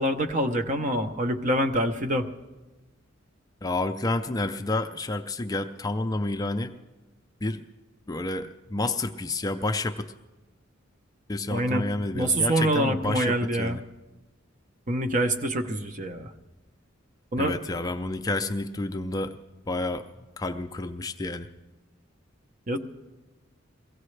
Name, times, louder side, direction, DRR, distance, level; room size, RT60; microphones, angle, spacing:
voice 1, 0.0-2.3 11.5-11.8 12.1-13.8 14.9-16.3 17.3-17.5 22.7-22.8, right 1 dB, 40° right, 7 dB, 0.8 m, -25 dB
voice 2, 3.6-6.7 7.4-7.6 8.1-10.1 11.3-13.8 17.4-19.4 19.7-21.5, left 2 dB, 20° left, 7 dB, 0.4 m, -30 dB
22.5 x 16.0 x 3.2 m, 1.2 s
head